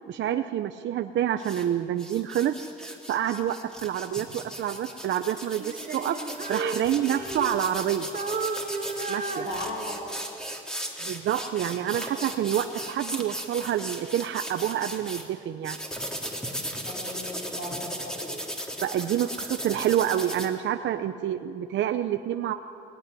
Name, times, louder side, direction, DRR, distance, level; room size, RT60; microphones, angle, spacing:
voice 1, 0.1-6.2 6.5-8.1 9.1-9.4 11.0-15.8 18.8-22.5, right 10 dB, 70° right, 8 dB, 0.8 m, -28 dB
sound 1, 1.4-1.6 2.0-15.2 15.6-20.5, equal, 5° left, 3.3 m, -37 dB
Female singing, 5.6-7.8 8.1-10.2, right 3 dB, 45° right, 2.3 m, -33 dB
voice 2, 9.4-10.2 16.8-18.3, left 1 dB, 65° left, -1 dB, 7.0 m, -36 dB
20.0 x 18.0 x 9.9 m, 2.6 s
cardioid pair, 90°, 20 cm